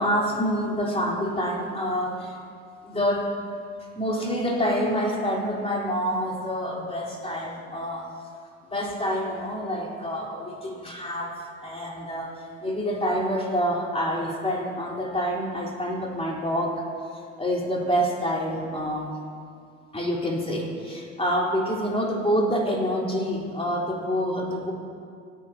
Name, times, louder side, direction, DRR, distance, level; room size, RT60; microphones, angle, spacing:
voice 1, 0.0-2.4 2.8-3.4 4.0-8.1 8.6-16.8 17.1-19.1 19.9-24.7, equal, 15° left, -4 dB, 4.2 m, -27 dB
29.5 x 9.9 x 2.9 m, 2.3 s
hypercardioid pair, 65°, 34 cm